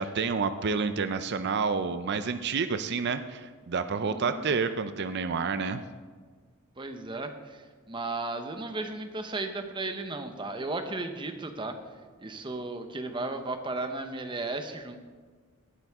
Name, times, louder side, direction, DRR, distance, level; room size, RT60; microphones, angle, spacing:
voice 1, 0.0-5.8, right 5 dB, 50° right, 11 dB, 0.5 m, -29 dB
voice 2, 4.0-4.6 6.8-11.7 12.2-15.0, right 2 dB, 20° right, 7 dB, 0.9 m, -35 dB
18.5 x 9.1 x 3.6 m, 1.5 s
head